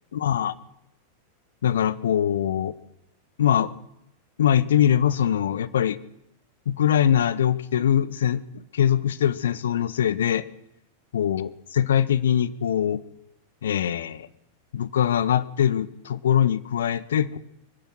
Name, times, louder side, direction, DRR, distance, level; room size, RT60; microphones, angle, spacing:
voice 1, 0.1-0.5 1.6-2.7 3.4-3.7 4.4-6.0 6.7-10.4 11.1-13.0 13.6-14.3 14.7-17.4, left 9 dB, 65° left, 17 dB, 0.7 m, -22 dB
21.5 x 10.5 x 6.2 m, 0.86 s
figure-of-eight pair, 90°, 0 cm